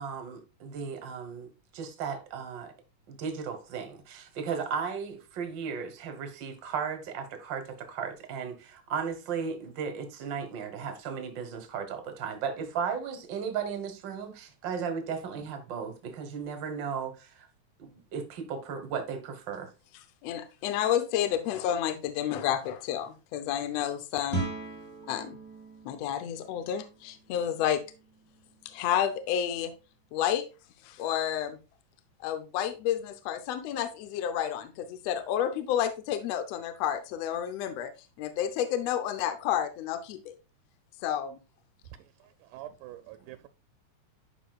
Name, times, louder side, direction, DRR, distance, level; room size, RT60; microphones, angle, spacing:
voice 1, 0.0-2.7 3.1-17.5 17.8-19.7, right 6 dB, 60° right, 1.2 m, -35 dB
voice 2, 20.2-24.5 25.1-25.4 25.8-27.8 28.6-29.7 30.1-30.5 30.8-31.6 32.2-37.9 38.2-40.3 41.0-41.4, left 10 dB, 75° left, 1.5 m, -30 dB
Guitar, 24.3-29.8, right 4 dB, 30° left, 1.5 m, -41 dB
voice 3, 42.5-43.5, right 14 dB, 85° right, 2.0 m, -44 dB
11.0 x 5.1 x 2.3 m
omnidirectional pair, 3.6 m